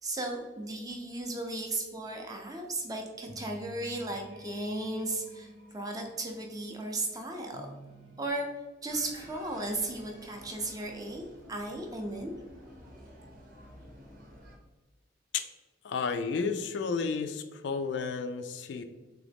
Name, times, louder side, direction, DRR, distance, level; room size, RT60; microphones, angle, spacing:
voice 1, 0.0-7.7 8.2-8.5 8.8-12.3, right 2 dB, 20° right, 2 dB, 0.5 m, -35 dB
sound 1, 2.8-8.3, right 1 dB, 85° right, 0.7 m, -51 dB
sound 2, 8.9-14.6, equal, 45° right, 0.8 m, -52 dB
voice 2, 15.8-18.8, left 5 dB, 65° left, 8 dB, 0.3 m, -32 dB
3.7 x 2.9 x 3.4 m, 1.3 s
head